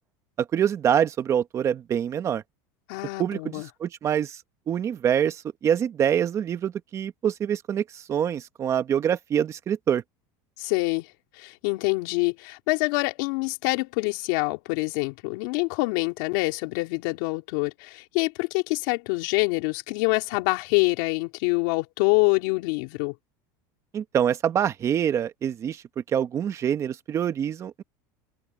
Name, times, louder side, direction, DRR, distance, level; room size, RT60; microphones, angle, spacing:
voice 1, 0.4-2.4 3.2-4.4 4.7-10.0 23.9-25.8 26.1-27.8, right 9 dB, 30° right, 1.3 m, -25 dB
voice 2, 2.9-3.7 10.6-11.1 11.3-23.1, left 27 dB, 70° left, 3.6 m, -26 dB
supercardioid pair, 145°, 10 cm